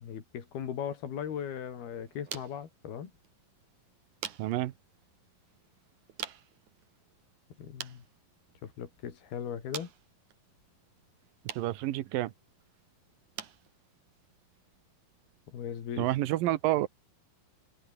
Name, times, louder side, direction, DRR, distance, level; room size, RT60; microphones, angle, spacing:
voice 1, 0.0-3.1 7.6-8.0 8.6-9.9 15.5-16.1, left 8 dB, 75° left, 4.9 m, -38 dB
sound 1, 1.1-16.1, right 10 dB, 55° right, 3.0 m, -49 dB
voice 2, 4.4-4.7 11.6-12.3 16.0-16.9, right 15 dB, 75° right, 2.6 m, -29 dB
omnidirectional pair, 4.5 m